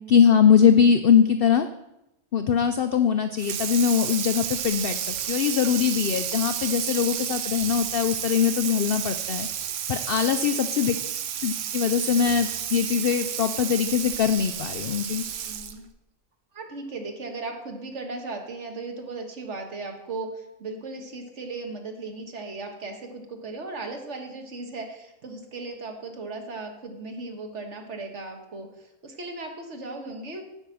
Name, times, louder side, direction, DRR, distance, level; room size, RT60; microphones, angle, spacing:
voice 1, 0.1-1.7 2.3-9.5 9.9-11.0 11.4-15.2, left 7 dB, 70° left, 9 dB, 0.5 m, -22 dB
Water tap faucet / Sink (filling or washing), 3.4-15.9, right 9 dB, 80° right, 1.2 m, -31 dB
voice 2, 10.3-10.6 15.3-15.9 16.5-30.4, right 3 dB, 55° right, 3 dB, 1.7 m, -37 dB
8.9 x 5.5 x 7.6 m, 0.88 s
omnidirectional pair, 1.5 m